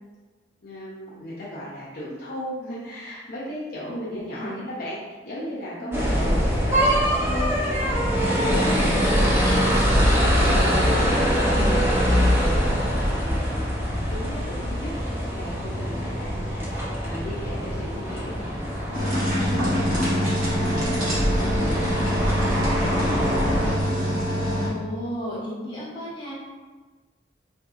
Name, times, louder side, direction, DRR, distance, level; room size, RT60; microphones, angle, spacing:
voice 1, 0.6-5.0 5.2-12.0 12.5-23.8, equal, 50° left, -8 dB, 0.6 m, -37 dB
voice 2, 3.9-4.6 5.8-6.3 11.4-11.8 24.6-26.3, equal, 25° left, -8 dB, 0.9 m, -34 dB
sound 1, 5.9-23.7, equal, 15° right, 0.5 m, -23 dB
sound 2, 18.9-24.7, equal, 45° right, 0.9 m, -25 dB
3.6 x 2.6 x 2.4 m, 1.3 s
head